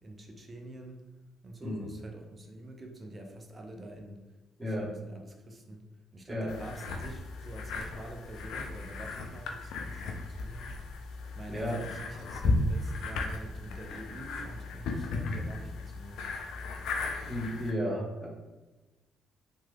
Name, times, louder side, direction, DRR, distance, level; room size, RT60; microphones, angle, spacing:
voice 1, 0.0-1.0 1.4-4.3 4.6-5.8 6.1-16.3, right 1 dB, 35° right, 3 dB, 0.6 m, -46 dB
voice 2, 4.6-4.9 6.3-6.5 11.5-11.8 17.3-18.3, equal, 15° right, -3 dB, 1.2 m, -33 dB
sound 1, 6.5-17.7, left 3 dB, 70° left, 0.4 m, -35 dB
3.2 x 3.0 x 2.3 m, 1.1 s
hypercardioid pair, 45°, 0 cm